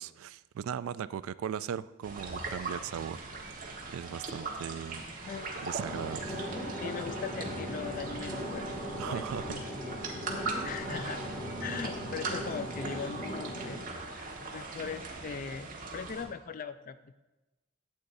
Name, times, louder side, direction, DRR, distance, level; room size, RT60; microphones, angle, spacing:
voice 1, 0.0-3.5 3.9-5.0 5.6-6.4 9.0-9.6 10.0-10.2, right 8 dB, 75° right, 16 dB, 0.3 m, -38 dB
sound 1, 2.0-16.3, right 3 dB, 40° right, 1.3 m, -40 dB
voice 2, 5.1-5.6 6.8-8.7 9.1-10.0 10.3-11.3 11.6-13.8 14.1-17.2, left 6 dB, 40° left, 11 dB, 0.3 m, -40 dB
sound 2, 5.8-13.8, equal, 20° left, 1.9 m, -38 dB
12.5 x 8.1 x 2.6 m, 1.1 s
head